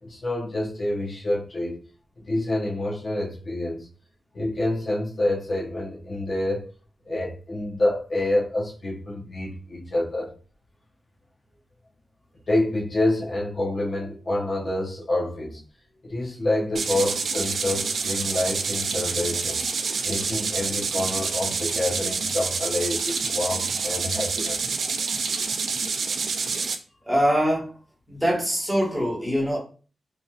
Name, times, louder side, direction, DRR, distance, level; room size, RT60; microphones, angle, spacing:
voice 1, 0.0-1.8 2.2-3.9 4.3-6.7 7.0-10.3 12.5-15.6 16.0-19.6 20.0-24.6, left 1 dB, 45° left, 0.9 m, -27 dB
sound 1, 16.7-26.8, right 5 dB, 65° right, 0.3 m, -27 dB
voice 2, 27.1-27.7 28.1-29.6, equal, 10° right, 1.2 m, -23 dB
2.9 x 2.8 x 2.4 m
wide cardioid pair, 125°, 0 cm